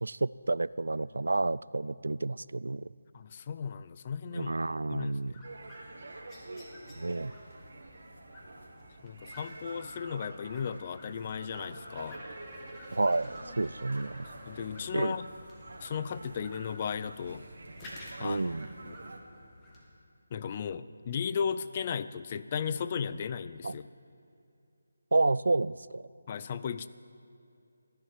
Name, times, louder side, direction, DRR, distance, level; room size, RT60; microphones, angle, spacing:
voice 1, 0.0-2.9 4.3-5.3 6.9-7.3 12.9-14.3 14.9-15.2 18.2-18.7 23.6-23.7 25.1-26.0, right 2 dB, 85° right, 20 dB, 0.3 m, -30 dB
voice 2, 3.1-4.6 4.9-5.4 9.0-12.2 14.5-15.3 15.8-17.4 18.2-19.0 20.3-23.9 26.3-26.9, left 7 dB, 30° left, 14 dB, 0.4 m, -35 dB
sound 1, 5.0-19.8, left 1 dB, 15° left, 1.9 m, -53 dB
sound 2, 5.4-19.2, right 2 dB, 65° right, 2.0 m, -48 dB
sound 3, 11.9-15.8, right 1 dB, 10° right, 3.4 m, -51 dB
15.0 x 10.5 x 7.4 m, 2.6 s
figure-of-eight pair, 165°, 0 cm